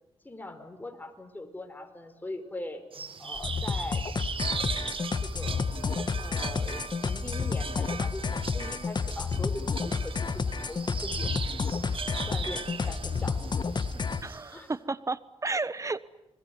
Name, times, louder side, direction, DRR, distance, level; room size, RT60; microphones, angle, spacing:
voice 1, 0.2-2.8 3.2-4.0 5.2-5.7 6.2-11.4 12.3-13.4 13.9-14.0 14.5-14.7, left 2 dB, 15° left, 6 dB, 5.1 m, -41 dB
sound 1, 2.9-14.6, right 5 dB, 50° right, 1.9 m, -39 dB
sound 2, 3.4-14.2, left 5 dB, 40° left, 1.6 m, -31 dB
voice 2, 14.2-16.1, right 3 dB, 30° right, 16 dB, 1.3 m, -32 dB
30.0 x 20.5 x 9.7 m, 0.94 s
cardioid pair, 75°, 11 cm